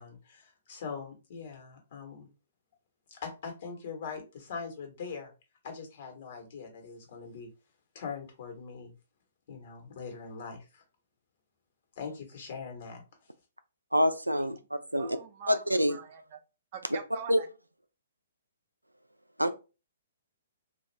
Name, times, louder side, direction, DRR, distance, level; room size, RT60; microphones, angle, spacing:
voice 1, 0.0-2.3 3.1-5.3 5.6-7.5 7.9-8.9 9.5-10.8 12.0-13.0, left 5 dB, 50° left, 1.2 m, -42 dB
voice 2, 13.9-15.1 15.5-16.0 17.3-17.4 19.4-19.5, equal, 90° right, 0.4 m, -26 dB
voice 3, 14.9-16.4 16.7-17.5, right 7 dB, 40° right, 0.6 m, -44 dB
2.5 x 2.4 x 3.2 m
figure-of-eight pair, 120°, 0 cm